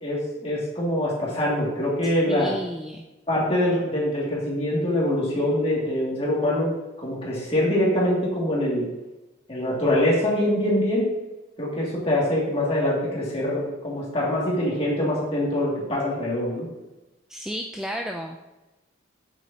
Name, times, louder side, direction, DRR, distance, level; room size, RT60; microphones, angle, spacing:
voice 1, 0.0-2.5 3.3-6.7 7.0-8.9 9.5-11.1 11.6-16.7, left 1 dB, 30° left, -5 dB, 2.4 m, -24 dB
voice 2, 2.3-3.0 17.3-18.4, equal, 5° right, 1 dB, 0.4 m, -32 dB
8.4 x 7.8 x 2.9 m, 1.0 s
head